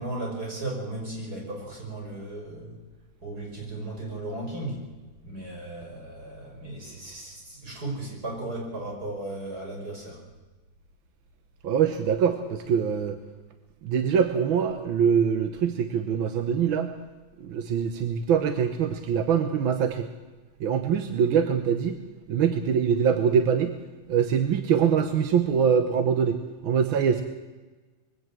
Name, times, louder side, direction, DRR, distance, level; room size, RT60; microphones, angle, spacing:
voice 1, 0.0-2.8 3.2-4.8 5.2-10.2, right 2 dB, 50° right, -1 dB, 6.3 m, -35 dB
voice 2, 11.6-13.2 13.8-16.9 17.4-20.1 20.6-22.0 22.3-23.7 24.1-26.4 26.6-27.2, right 7 dB, 90° right, 8 dB, 1.9 m, -23 dB
22.0 x 16.0 x 7.5 m, 1.2 s
omnidirectional pair, 2.1 m